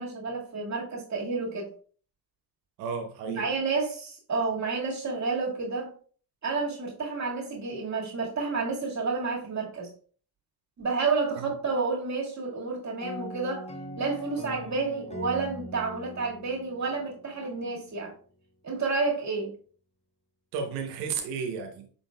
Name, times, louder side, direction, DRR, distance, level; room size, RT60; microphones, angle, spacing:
voice 1, 0.0-1.7 3.2-5.9 6.4-9.9 10.8-13.7 14.0-18.1 18.6-19.5, right 4 dB, 35° right, 2.0 m, -30 dB
voice 2, 2.8-3.5 11.4-11.5 20.5-21.9, right 5 dB, 90° right, 1.0 m, -33 dB
sound 1, 13.0-17.6, equal, 15° left, 0.6 m, -41 dB
5.7 x 3.9 x 2.3 m
hypercardioid pair, 60°, 49 cm